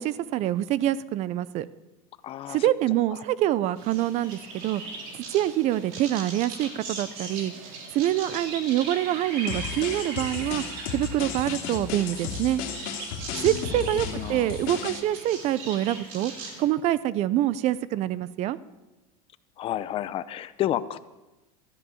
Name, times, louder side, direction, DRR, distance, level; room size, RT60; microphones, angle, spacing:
voice 1, 0.0-1.7 2.5-4.8 5.3-7.6 7.9-10.6 10.9-12.6 13.4-16.3 16.6-18.6, right 13 dB, 35° right, 18 dB, 0.6 m, -26 dB
voice 2, 2.2-2.7 3.1-3.2 13.3-14.6 19.6-21.0, left 12 dB, 30° left, 14 dB, 0.7 m, -32 dB
sound 1, 3.8-16.7, right 3 dB, 50° right, 3.8 m, -39 dB
sound 2, 9.5-15.0, left 7 dB, 45° left, 2.6 m, -34 dB
14.0 x 10.5 x 7.2 m, 1.1 s
supercardioid pair, 145°, 19 cm